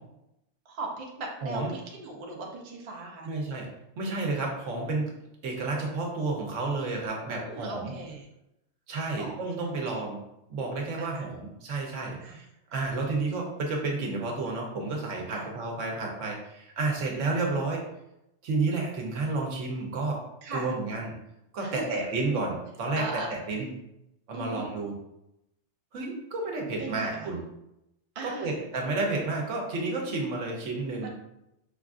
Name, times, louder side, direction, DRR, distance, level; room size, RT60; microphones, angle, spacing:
voice 1, 0.6-3.3 6.9-8.3 9.2-9.7 9.9-10.0 11.0-11.2 12.2-12.4 15.3-15.5 20.4-20.7 21.6-22.0 23.0-23.3 24.3-24.7 26.8-27.3 28.1-28.6 31.0-31.1, right 3 dB, 40° right, -1 dB, 0.5 m, -39 dB
voice 2, 3.2-3.7 4.0-5.1 5.4-7.9 8.9-10.2 10.5-12.4 12.7-17.9 18.4-20.2 20.5-21.1 21.5-23.7 24.3-24.9 25.9-27.4 28.2-31.1, right 3 dB, 80° right, 0 dB, 1.1 m, -31 dB
4.9 x 2.4 x 2.4 m, 0.86 s
omnidirectional pair, 1.3 m